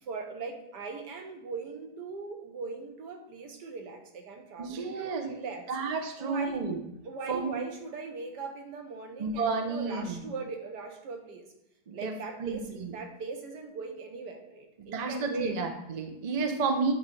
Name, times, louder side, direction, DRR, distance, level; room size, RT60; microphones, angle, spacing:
voice 1, 0.0-5.7 6.2-6.6 7.0-11.5 11.9-15.6, right 4 dB, 85° right, 3 dB, 1.6 m, -39 dB
voice 2, 4.6-5.3 5.7-6.8 7.3-7.6 9.2-10.2 11.9-12.1 12.4-12.9 14.8-16.9, right 4 dB, 45° right, 5 dB, 0.5 m, -31 dB
8.5 x 3.2 x 5.3 m, 0.85 s
omnidirectional pair, 1.8 m